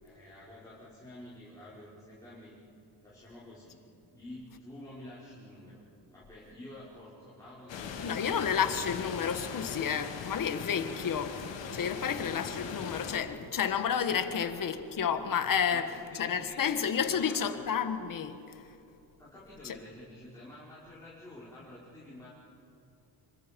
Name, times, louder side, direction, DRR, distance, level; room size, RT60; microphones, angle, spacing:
voice 1, 0.0-2.6 3.0-3.8 4.1-5.8 6.1-8.6 14.4-14.5 15.7-17.6 19.2-22.3, left 1 dB, 10° left, 5.3 m, -49 dB
sound 1, 7.7-13.2, left 6 dB, 80° left, 2.5 m, -40 dB
voice 2, 8.0-18.4 19.6-19.8, left 7 dB, 50° left, 1.6 m, -31 dB
26.0 x 25.0 x 5.3 m
cardioid pair, 125°, 43 cm